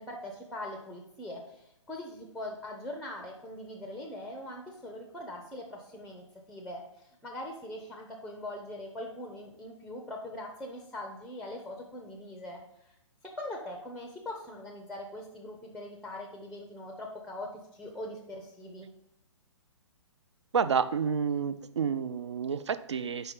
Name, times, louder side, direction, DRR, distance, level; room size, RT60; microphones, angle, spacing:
voice 1, 0.0-12.6 13.2-18.9, left 1 dB, ahead, 3 dB, 0.5 m, -42 dB
voice 2, 20.5-23.3, right 6 dB, 65° right, 13 dB, 0.4 m, -29 dB
5.3 x 4.5 x 5.3 m, 0.79 s
figure-of-eight pair, 125°, 16 cm